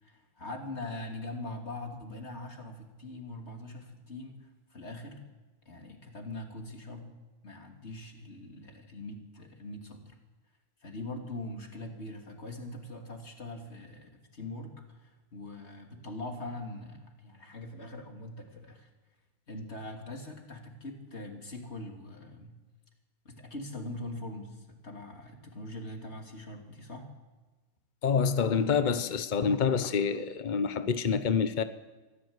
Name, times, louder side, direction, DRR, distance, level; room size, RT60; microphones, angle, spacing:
voice 1, 0.0-5.2 5.6-7.1 7.4-10.2 10.8-18.9 19.5-22.6 23.2-27.1, left 2 dB, 30° left, 3.1 m, -42 dB
voice 2, 28.0-31.6, left 6 dB, 75° left, 0.4 m, -27 dB
24.0 x 15.5 x 8.1 m
omnidirectional pair, 2.2 m